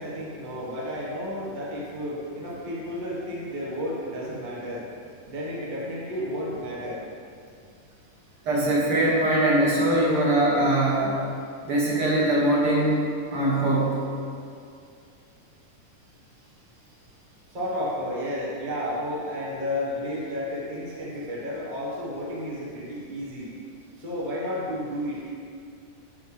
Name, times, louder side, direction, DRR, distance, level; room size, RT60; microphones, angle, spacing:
voice 1, 0.0-7.1 17.5-23.5 24.0-25.2, left 1 dB, 70° right, -6 dB, 0.4 m, -32 dB
voice 2, 8.5-11.3 11.7-14.0, right 1 dB, 55° right, -5 dB, 1.8 m, -22 dB
12.0 x 5.4 x 3.5 m, 2.4 s
omnidirectional pair, 3.8 m